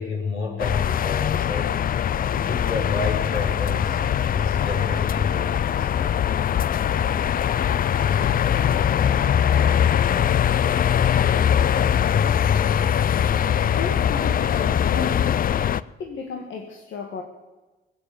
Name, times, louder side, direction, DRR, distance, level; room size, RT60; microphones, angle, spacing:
voice 1, 0.0-4.0 4.3-6.0, left 4 dB, 90° left, -1 dB, 4.3 m, -30 dB
sound 1, 0.6-15.8, left 9 dB, 45° left, 0.5 m, -21 dB
voice 2, 13.8-15.4 16.0-17.2, left 5 dB, 75° left, 2 dB, 1.9 m, -33 dB
20.0 x 8.2 x 8.6 m, 1.2 s
cardioid pair, 90°, 20 cm